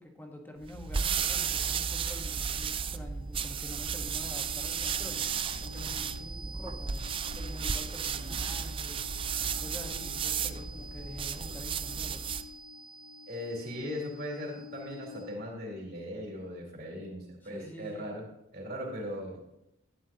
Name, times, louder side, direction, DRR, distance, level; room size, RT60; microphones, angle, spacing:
voice 1, 0.0-5.2 5.6-7.0 7.3-9.0 9.6-12.3 17.4-18.1, left 1 dB, 10° left, 2 dB, 1.2 m, -46 dB
sound 1, 0.6-12.5, right 7 dB, 25° right, 0.4 m, -34 dB
sound 2, 2.0-15.6, left 1 dB, 85° left, 3.6 m, -48 dB
voice 2, 13.3-18.2 18.5-19.4, equal, 50° right, 0 dB, 2.7 m, -38 dB
11.5 x 9.8 x 2.8 m, 0.88 s
head